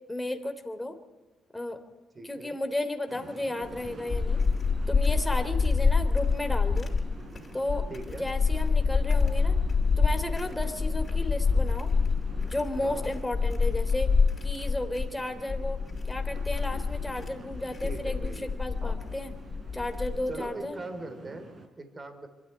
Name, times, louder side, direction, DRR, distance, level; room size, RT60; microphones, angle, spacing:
voice 1, 0.1-1.0 1.5-1.8 2.2-4.4 4.9-6.9 7.5-7.9 8.2-9.5 10.0-11.9 12.4-14.1 14.4-15.8 16.0-19.3 19.7-20.8, left 1 dB, 10° left, 6 dB, 3.2 m, -33 dB
voice 2, 2.1-2.6 5.3-5.6 7.9-8.3 10.4-10.7 12.8-13.2 17.8-18.5 18.8-19.0 20.3-22.3, right 2 dB, 30° right, 7 dB, 3.5 m, -42 dB
sound 1, 3.1-21.7, right 2 dB, 50° right, 4.5 m, -47 dB
sound 2, 3.6-20.5, left 4 dB, 30° left, 5.4 m, -27 dB
24.0 x 13.5 x 9.6 m, 1.2 s
cardioid pair, 90°, 0 cm